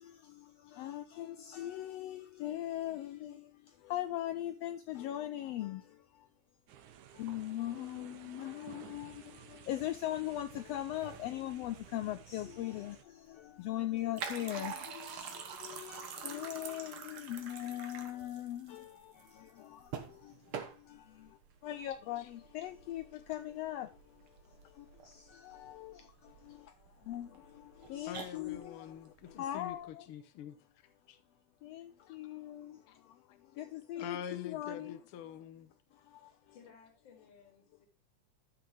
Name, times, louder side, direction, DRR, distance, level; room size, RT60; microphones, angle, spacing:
voice 1, 0.0-6.3 7.1-30.1 31.6-35.0 35.9-36.5, left 13 dB, 85° left, 1.4 m, -41 dB
sound 1, 6.7-13.0, right 9 dB, 85° right, 2.5 m, -54 dB
sound 2, 10.3-29.8, right 6 dB, 55° right, 1.8 m, -48 dB
voice 2, 28.1-30.6 31.1-31.2 32.1-32.2 32.9-33.0 33.3-33.4 34.0-35.7, left 9 dB, 70° left, 1.4 m, -45 dB
voice 3, 36.2-37.9, left 6 dB, 40° left, 2.7 m, -60 dB
13.0 x 6.0 x 3.3 m
omnidirectional pair, 3.4 m